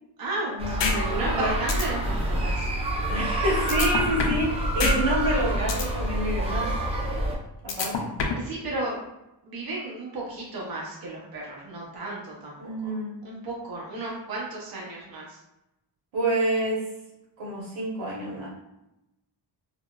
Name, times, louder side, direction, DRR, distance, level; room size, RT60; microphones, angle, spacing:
voice 1, 0.2-2.7 8.3-9.0 9.4-12.9 13.2-15.4, right 2 dB, 50° right, -4 dB, 0.9 m, -34 dB
sound 1, 0.6-7.3, right 1 dB, 15° right, 0.6 m, -27 dB
sound 2, 0.8-1.0 1.3-1.4 1.7-1.8 3.7-4.5 4.8-5.0 5.3-5.9 7.7-8.5, left 5 dB, 70° left, 0.6 m, -25 dB
voice 2, 1.1-1.6 3.1-6.7 7.6-8.1 12.6-13.1 16.1-16.9 17.4-18.5, right 1 dB, 90° right, -5 dB, 1.1 m, -28 dB
3.8 x 2.1 x 2.3 m, 0.91 s
wide cardioid pair, 110°, 45 cm